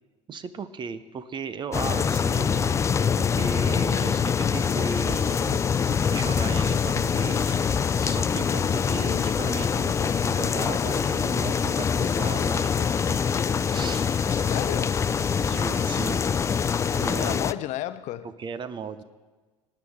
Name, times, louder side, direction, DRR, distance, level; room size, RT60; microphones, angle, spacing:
voice 1, 0.3-2.8 3.2-5.4 6.1-7.6 8.0-13.4 13.7-14.1 15.3-16.2 17.0-17.4 18.4-19.0, right 5 dB, 30° right, 0.7 m, -36 dB
sound 1, 1.7-17.5, left 7 dB, 20° left, 0.3 m, -24 dB
sound 2, 2.8-7.8, right 11 dB, 70° right, 0.5 m, -45 dB
sound 3, 4.5-17.4, right 2 dB, 15° right, 1.2 m, -46 dB
voice 2, 14.5-15.2 17.2-18.3, left 13 dB, 50° left, 0.7 m, -32 dB
23.0 x 9.7 x 3.7 m
figure-of-eight pair, 70°, 16 cm